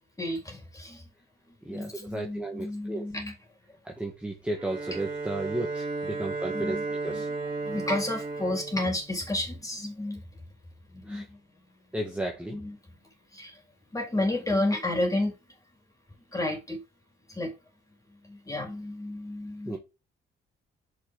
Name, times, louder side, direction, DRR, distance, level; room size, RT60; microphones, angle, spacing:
voice 1, 0.2-1.1 1.5-3.3 6.1-6.2 6.5-6.8 7.1-7.2 7.6-10.2 10.9-11.4 12.5-12.8 13.3-13.6 13.9-15.4 16.3-16.8 17.3-17.5 18.1-19.8, left 1 dB, 15° left, 3.7 m, -31 dB
voice 2, 1.6-3.1 3.8-7.3 11.1-11.2 11.9-12.6 19.6-19.8, right 1 dB, 5° right, 1.5 m, -34 dB
Bowed string instrument, 4.5-9.7, right 3 dB, 25° right, 3.7 m, -34 dB
6.1 x 6.0 x 3.7 m
cardioid pair, 90°, 20 cm